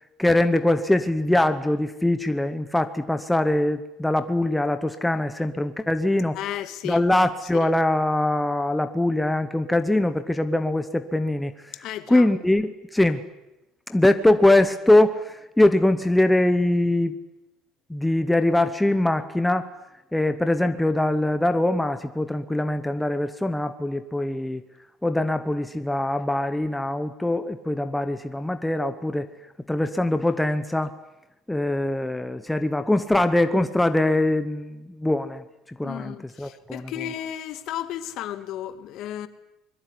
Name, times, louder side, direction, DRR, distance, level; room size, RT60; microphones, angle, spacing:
voice 1, 0.2-6.4 6.8-11.5 12.1-13.2 13.9-17.1 17.9-19.7 20.1-24.6 25.0-29.3 29.7-30.9 31.5-35.4 35.8-37.0, left 1 dB, 5° left, 0.9 m, -22 dB
voice 2, 6.3-7.0 7.5-7.7 11.8-12.3 35.8-39.3, left 11 dB, 50° left, 1.8 m, -33 dB
24.5 x 22.0 x 9.8 m
cardioid pair, 175°, 0 cm